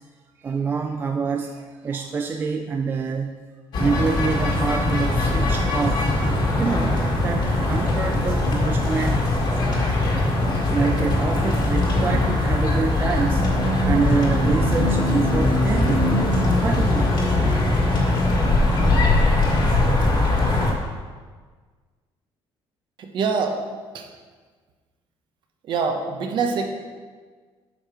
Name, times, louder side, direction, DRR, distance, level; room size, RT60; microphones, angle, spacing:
voice 1, 0.4-3.4 3.8-6.1 6.6-9.3 10.7-13.4 13.7-16.1 16.6-17.5, right 5 dB, 20° right, 4 dB, 0.3 m, -26 dB
sound 1, 3.7-20.7, left 2 dB, 45° left, 1.6 m, -21 dB
voice 2, 23.0-23.7 23.9-24.1 25.6-26.7, right 5 dB, 50° right, 4 dB, 1.0 m, -25 dB
8.4 x 4.8 x 6.0 m, 1.5 s
cardioid pair, 175°, 10 cm